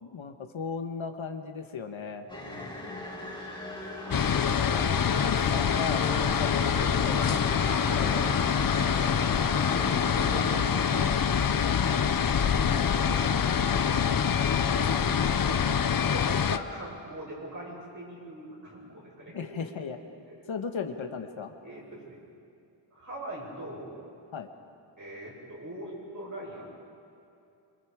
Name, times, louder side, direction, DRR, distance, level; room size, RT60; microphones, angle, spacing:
voice 1, 0.0-2.3 4.1-7.4 7.9-8.3 12.7-12.9 19.3-20.0 20.5-21.5 24.3-24.5, left 6 dB, 75° left, 6 dB, 1.5 m, -36 dB
sound 1, 2.3-10.6, left 1 dB, 10° left, 4.5 m, -38 dB
voice 2, 2.3-2.9 3.8-4.7 6.2-6.5 7.5-8.4 8.7-12.3 12.8-14.4 14.7-15.8 16.1-19.5 20.3-20.4 21.6-22.2 22.9-23.9 25.0-26.7, right 1 dB, 40° right, -4 dB, 7.6 m, -42 dB
sound 2, 4.1-16.6, left 7 dB, 45° left, 0.7 m, -25 dB
26.0 x 25.0 x 5.1 m, 2.6 s
wide cardioid pair, 145°, 47 cm